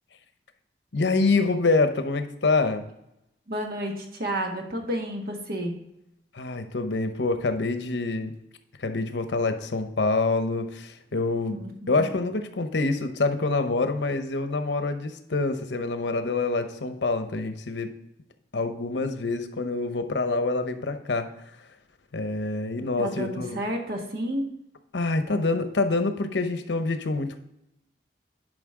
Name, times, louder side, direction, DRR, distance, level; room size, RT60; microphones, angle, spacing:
voice 1, 0.9-2.9 6.3-8.3 8.8-11.6 11.9-17.9 18.5-21.3 22.1-23.6 24.9-27.4, left 3 dB, 90° left, 9 dB, 0.9 m, -26 dB
voice 2, 3.5-5.7 11.5-12.1 22.8-24.5, equal, 60° right, 2 dB, 1.5 m, -31 dB
11.0 x 5.2 x 3.7 m, 0.84 s
head